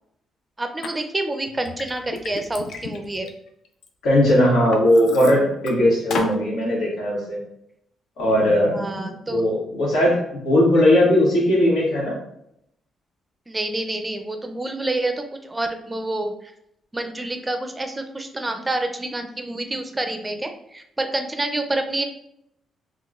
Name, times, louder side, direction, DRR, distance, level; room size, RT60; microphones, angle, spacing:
voice 1, 0.6-3.3 8.7-9.4 13.5-16.3 16.9-22.0, right 2 dB, 20° right, 6 dB, 0.4 m, -28 dB
Liquid, 0.8-0.9 1.5-3.9 4.3-5.7 6.1-6.4, left 4 dB, 75° left, 0.4 m, -32 dB
voice 2, 4.0-7.4 8.2-8.8 9.3-12.1, left 1 dB, 90° left, -5 dB, 1.3 m, -18 dB
3.7 x 2.2 x 2.4 m, 0.75 s
cardioid pair, 90°, 0 cm